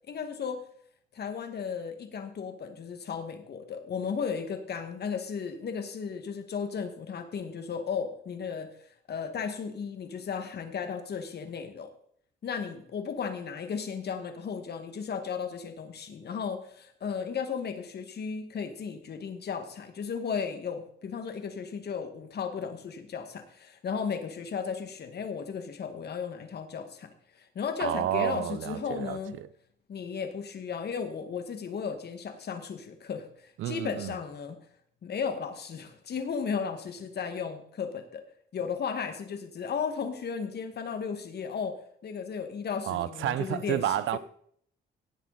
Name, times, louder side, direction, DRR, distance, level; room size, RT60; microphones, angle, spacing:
voice 1, 0.1-0.6 1.1-11.9 12.4-29.3 29.9-34.6 35.0-38.2 38.5-41.8 42.0-43.8, left 6 dB, 55° left, 2.1 m, -35 dB
voice 2, 27.8-29.5 33.6-34.1 42.9-44.2, right 11 dB, 75° right, 0.8 m, -30 dB
17.0 x 8.3 x 4.3 m
cardioid pair, 90°, 20 cm